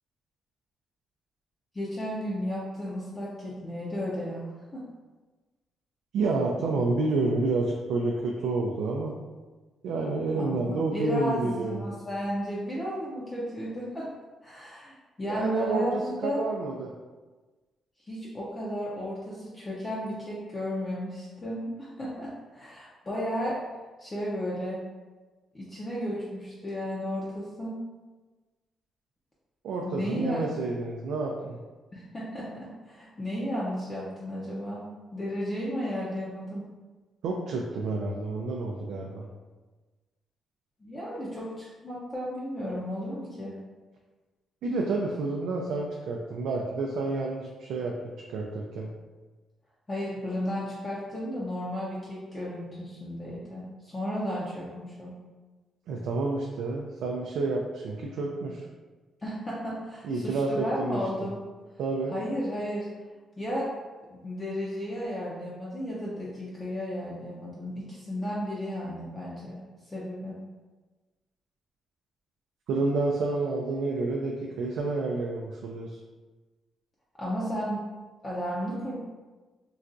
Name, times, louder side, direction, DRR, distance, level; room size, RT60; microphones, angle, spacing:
voice 1, 1.7-4.8 10.3-14.1 14.4-16.4 18.0-23.6 24.0-24.8 25.5-27.8 29.8-30.4 31.9-34.9 35.1-36.6 40.8-43.6 49.9-55.2 59.2-61.4 62.1-62.9 63.4-63.7 64.1-69.6 69.9-70.4 77.2-77.8 78.2-78.9, equal, 20° left, -7 dB, 0.5 m, -34 dB
voice 2, 6.1-9.1 9.8-11.9 15.2-16.9 29.6-31.6 37.2-39.3 44.6-48.9 55.9-58.6 60.0-61.0 61.8-62.2 72.7-75.9, right 3 dB, 80° right, -1 dB, 0.3 m, -29 dB
3.8 x 2.2 x 2.5 m, 1.3 s
cardioid pair, 140°, 0 cm